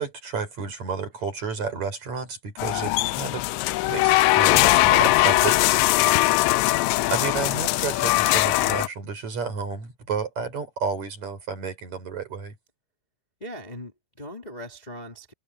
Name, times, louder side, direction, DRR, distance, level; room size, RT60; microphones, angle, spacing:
voice 1, 0.0-3.4 3.9-5.7 7.1-12.5, right 5 dB, 40° right, 5.9 m, -31 dB
sound 1, 2.6-8.9, left 18 dB, 85° left, 2.9 m, -20 dB
voice 2, 6.0-6.4 13.4-15.3, equal, 10° left, 2.9 m, -39 dB
omnidirectional pair, 5.1 m